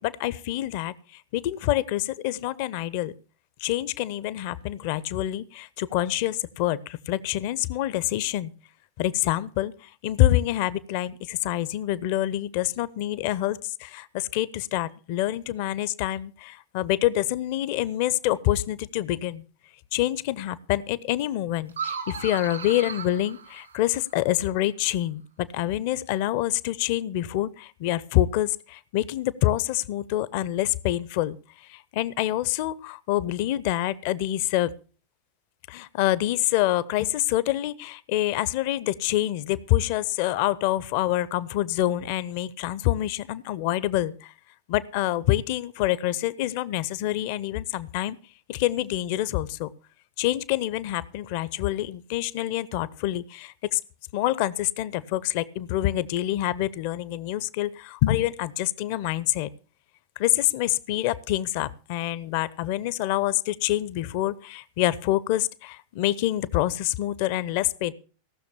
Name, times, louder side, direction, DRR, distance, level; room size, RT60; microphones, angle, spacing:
voice 1, 0.0-3.1 3.6-8.5 9.0-19.4 19.9-34.7 35.7-44.3 44.7-48.2 48.5-49.7 50.2-53.8 54.1-59.5 60.2-67.9, left 14 dB, 45° left, 19 dB, 0.7 m, -26 dB
sound 1, 21.7-24.2, right 6 dB, 75° right, 2.4 m, -36 dB
17.0 x 6.5 x 6.8 m, 0.39 s
figure-of-eight pair, 90°, 0 cm